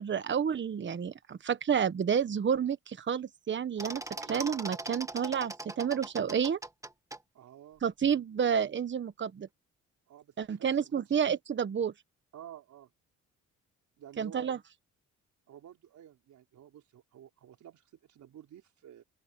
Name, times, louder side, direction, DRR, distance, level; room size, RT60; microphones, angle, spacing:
voice 1, 0.0-4.0 4.3-6.6 7.8-9.5 10.4-11.9 14.2-14.6, right 7 dB, 40° right, 1.2 m, -30 dB
sound 1, 3.8-7.2, right 2 dB, 10° right, 1.5 m, -40 dB
voice 2, 7.3-7.8 10.1-11.2 12.3-12.9 14.0-14.5 15.5-19.0, right 10 dB, 70° right, 4.9 m, -52 dB
open air
cardioid pair, 90°, 30 cm